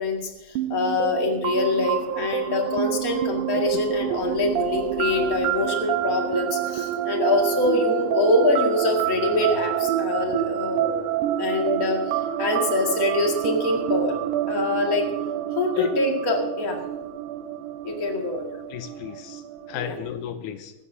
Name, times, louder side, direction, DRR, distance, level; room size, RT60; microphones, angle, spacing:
voice 1, 0.0-11.1 11.4-14.1 14.5-15.0 15.6-16.8 17.8-18.4 19.8-19.9, left 2 dB, 30° left, 1 dB, 2.1 m, -24 dB
sound 1, 0.6-20.1, right 12 dB, 80° right, 2.2 m, -28 dB
voice 2, 18.7-20.7, left 10 dB, 80° left, 8 dB, 2.1 m, -34 dB
24.5 x 13.5 x 2.8 m, 1.0 s
omnidirectional pair, 3.6 m